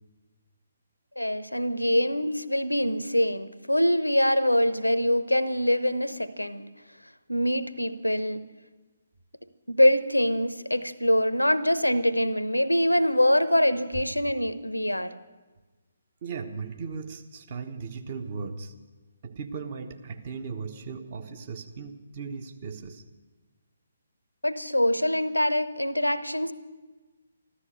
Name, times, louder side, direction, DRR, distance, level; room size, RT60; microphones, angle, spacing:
voice 1, 1.2-6.7 7.3-8.4 9.7-15.2 24.4-26.5, left 1 dB, 90° left, 13 dB, 0.9 m, -24 dB
voice 2, 16.2-18.7 19.2-23.0, right 5 dB, 40° right, 6 dB, 1.2 m, -37 dB
14.5 x 13.0 x 6.7 m, 1.2 s
figure-of-eight pair, 140°, 0 cm